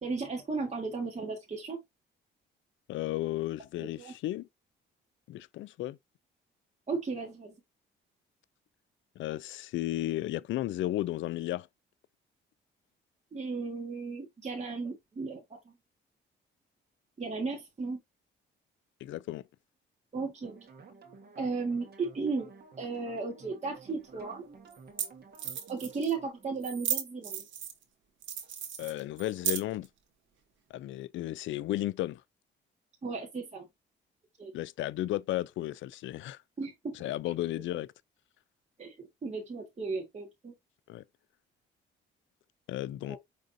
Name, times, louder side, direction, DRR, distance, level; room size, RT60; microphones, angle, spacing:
voice 1, 0.0-1.8 4.0-4.1 6.9-7.5 13.3-15.6 17.2-18.0 20.1-20.5 21.4-22.5 22.8-24.4 25.7-27.4 33.0-33.7 34.4-34.5 36.6-36.9 38.8-38.9 39.2-40.5 43.1-43.2, right 4 dB, 35° right, 1.5 m, -35 dB
voice 2, 2.9-4.5 5.3-6.0 9.2-11.7 19.0-19.4 28.8-29.9 30.7-32.2 34.5-36.4 36.9-37.9 40.9-41.0 42.7-43.2, left 15 dB, 75° left, 0.4 m, -34 dB
sound 1, 20.4-27.4, right 5 dB, 50° right, 1.4 m, -54 dB
sound 2, 23.9-24.0 24.7-24.8 25.0-25.1 25.3-26.1 26.6-27.8 28.2-29.9, right 8 dB, 70° right, 1.2 m, -34 dB
5.4 x 3.4 x 2.6 m
cardioid pair, 90°, 20 cm